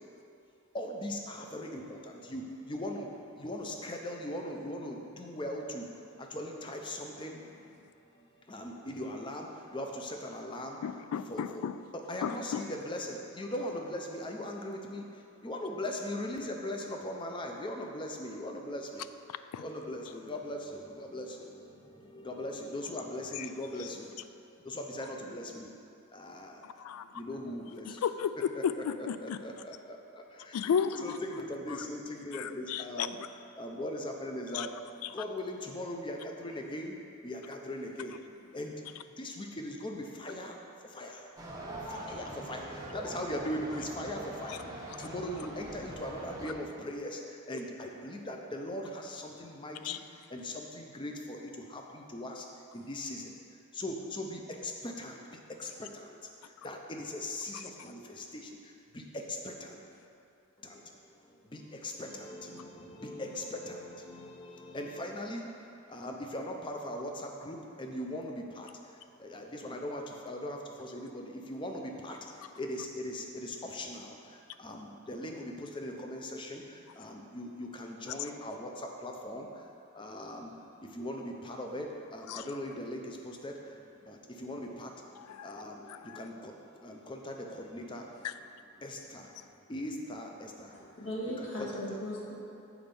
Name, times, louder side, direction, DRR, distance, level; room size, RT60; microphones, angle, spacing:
voice 1, 0.7-3.1 3.3-5.9 6.2-7.4 8.5-10.8 11.3-11.4 12.1-15.1 15.4-19.0 19.6-24.2 24.6-25.7 26.1-26.6 27.1-28.0 28.5-28.6 29.2-30.6 31.0-33.2 33.6-34.7 35.1-37.0 37.2-38.1 38.5-38.7 39.2-40.6 40.8-41.3 41.9-50.0 50.3-52.5 52.7-53.3 53.7-56.2 56.4-59.8 60.6-60.9 61.2-65.5 65.9-68.7 69.2-79.7 79.9-80.5 80.8-85.0 85.4-88.2 88.8-89.3 89.7-90.7 91.4-92.0, left 1 dB, 20° left, 2 dB, 0.5 m, -40 dB
voice 2, 10.8-11.8 12.2-12.6 19.3-19.6 23.3-23.5 23.8-24.0 25.0-25.1 26.6-27.2 27.8-29.4 30.5-31.2 31.7-31.9 32.3-33.3 34.5-35.2 44.5-44.6 44.9-45.1 49.8-50.0 55.8-55.9 57.5-57.9 72.4-72.5 78.1-78.3 82.3-82.5 85.2-85.6 85.9-86.3 88.2-88.4 89.4-89.5, left 7 dB, 80° left, 13 dB, 0.3 m, -35 dB
sound 1, 41.4-46.5, right 1 dB, 15° right, 0.7 m, -43 dB
voice 3, 90.7-92.3, left 1 dB, 65° left, -5 dB, 1.6 m, -38 dB
7.1 x 4.4 x 5.3 m, 2.7 s
head